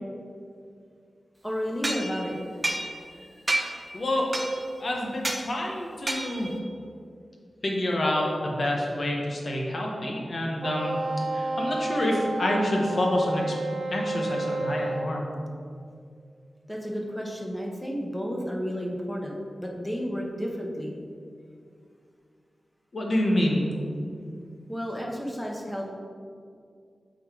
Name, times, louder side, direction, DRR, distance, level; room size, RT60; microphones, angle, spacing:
voice 1, 1.4-2.4 16.7-20.9 24.7-25.9, equal, 5° left, -1 dB, 1.0 m, -32 dB
sound 1, 1.8-3.2 3.5-3.9 4.3-4.8 5.2-5.5 6.1-6.6, right 1 dB, 25° right, 0.7 m, -30 dB
voice 2, 3.9-4.3 4.8-6.5 7.6-11.0 11.3-13.5 13.9-15.3 22.9-23.8, left 1 dB, 50° left, -1 dB, 1.2 m, -27 dB
Wind instrument woodwind instrument, 10.6-15.1, right 2 dB, 60° right, 0.5 m, -31 dB
7.8 x 4.0 x 5.0 m, 2.3 s
wide cardioid pair, 105°, 0 cm